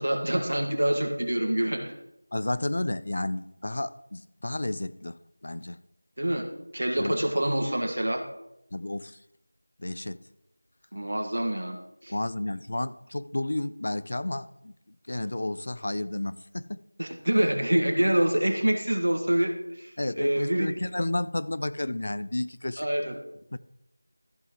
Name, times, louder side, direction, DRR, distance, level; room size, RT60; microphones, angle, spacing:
voice 1, 0.0-1.9 6.2-6.5 6.7-8.2 10.9-11.8 12.0-12.1 17.0-20.7 22.8-23.2, right 1 dB, 70° right, 1.8 m, -26 dB
voice 2, 2.3-5.8 7.0-7.2 8.7-9.2 9.8-10.2 12.1-14.7 15.1-16.8 20.0-22.9 23.5-23.6, left 1 dB, 45° left, 0.4 m, -31 dB
14.0 x 6.3 x 3.1 m
figure-of-eight pair, 175°, 0 cm